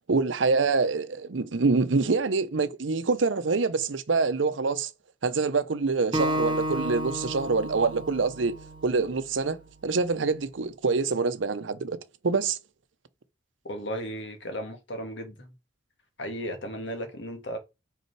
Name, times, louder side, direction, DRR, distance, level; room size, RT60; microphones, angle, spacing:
voice 1, 0.1-4.9 5.2-8.5 8.8-12.6, right 4 dB, 85° right, 0.7 m, -26 dB
Acoustic guitar, 6.1-9.4, right 1 dB, 25° right, 0.8 m, -32 dB
voice 2, 13.6-15.5 16.2-17.6, equal, 70° left, 1.7 m, -35 dB
5.5 x 4.3 x 4.6 m
head